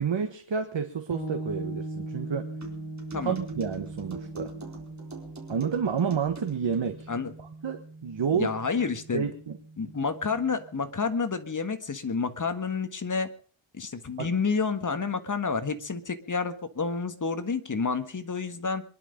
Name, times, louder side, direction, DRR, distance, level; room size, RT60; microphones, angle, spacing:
voice 1, 0.0-2.5 3.2-4.5 5.5-7.1 7.4-8.5 9.1-9.6 14.2-14.3, right 6 dB, 60° right, 6 dB, 1.5 m, -30 dB
sound 1, 1.1-10.8, right 2 dB, 15° right, 4.5 m, -40 dB
sound 2, 2.6-6.9, right 2 dB, 35° right, 4.2 m, -43 dB
voice 2, 8.3-9.3 9.8-13.3 13.7-18.8, left 5 dB, 40° left, 9 dB, 1.6 m, -29 dB
23.5 x 11.0 x 5.3 m, 0.42 s
wide cardioid pair, 135°, 50 cm